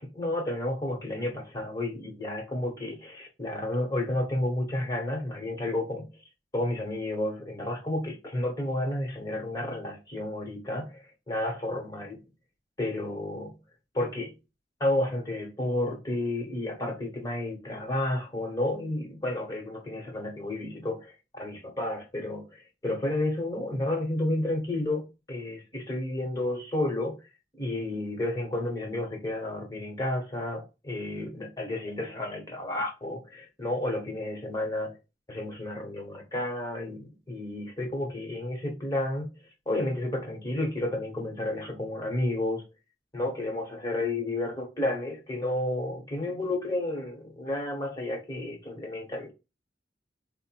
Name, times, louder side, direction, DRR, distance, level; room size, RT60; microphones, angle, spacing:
voice 1, 0.0-6.1 6.5-12.2 12.8-13.5 13.9-14.3 14.8-27.1 27.5-34.9 35.3-39.3 39.7-42.6 43.1-49.3, left 1 dB, 20° left, 1.3 m, -31 dB
4.6 x 2.2 x 4.6 m
head